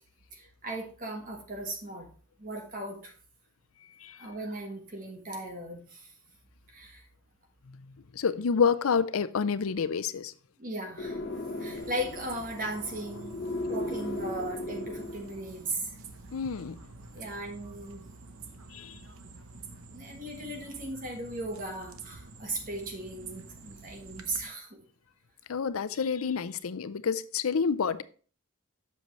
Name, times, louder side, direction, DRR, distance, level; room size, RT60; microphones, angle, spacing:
voice 1, 0.3-2.1 2.4-3.1 4.2-6.1 6.7-7.0 10.6-11.2 11.6-13.4 13.7-16.0 17.1-18.0 19.9-24.8, right 1 dB, 40° right, 1.3 m, -37 dB
voice 2, 8.2-10.3 16.3-16.8 18.7-19.0 25.5-28.0, left 6 dB, 80° left, 0.5 m, -28 dB
sound 1, 11.0-15.6, left 2 dB, 50° left, 1.0 m, -37 dB
sound 2, 11.7-24.4, right 3 dB, 80° right, 0.9 m, -48 dB
7.9 x 6.5 x 3.1 m
head